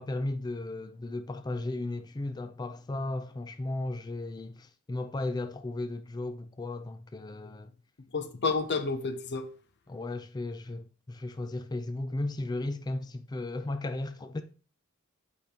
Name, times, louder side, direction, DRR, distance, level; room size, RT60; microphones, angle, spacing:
voice 1, 0.0-7.7 9.9-14.4, left 2 dB, 20° left, 0.4 m, -35 dB
voice 2, 8.1-9.5, left 4 dB, 55° left, 0.8 m, -30 dB
8.3 x 5.1 x 2.8 m
head